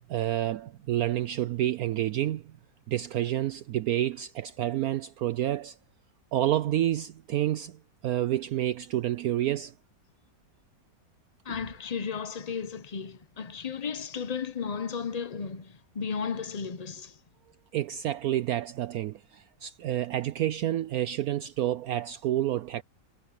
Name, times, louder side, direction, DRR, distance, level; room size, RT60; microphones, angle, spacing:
voice 1, 0.1-2.6 2.9-5.8 6.3-9.7 17.7-22.8, right 13 dB, 70° right, 0.9 m, -29 dB
voice 2, 11.4-17.2, left 6 dB, 55° left, 0.4 m, -34 dB
omnidirectional pair, 1.9 m